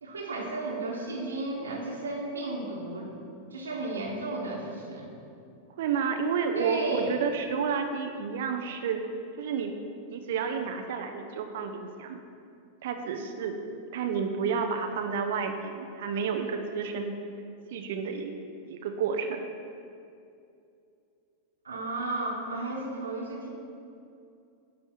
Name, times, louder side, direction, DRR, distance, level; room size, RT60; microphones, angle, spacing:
voice 1, 0.0-3.1 3.5-5.2 6.5-7.1 21.6-23.5, right 2 dB, 70° right, -2 dB, 1.4 m, -33 dB
voice 2, 5.8-9.0 9.4-9.8 10.1-12.2 12.8-13.6 13.9-17.1 17.7-18.3 18.7-19.5, right 6 dB, 55° right, 5 dB, 0.6 m, -30 dB
10.5 x 3.5 x 6.6 m, 2.6 s
figure-of-eight pair, 90°, 0 cm